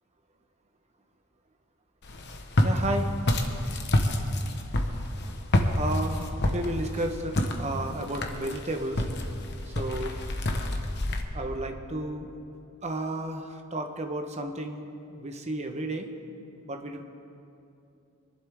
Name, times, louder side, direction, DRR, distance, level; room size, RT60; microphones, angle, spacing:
Walk footsteps, 2.0-11.2, left 1 dB, 50° left, 1.1 m, -28 dB
voice 1, 2.6-3.1 5.8-9.0 9.7-10.1 11.3-12.3 12.8-14.8 15.1-16.1 16.6-17.0, right 1 dB, 30° right, 5 dB, 1.0 m, -32 dB
24.5 x 11.5 x 3.5 m, 2.7 s
head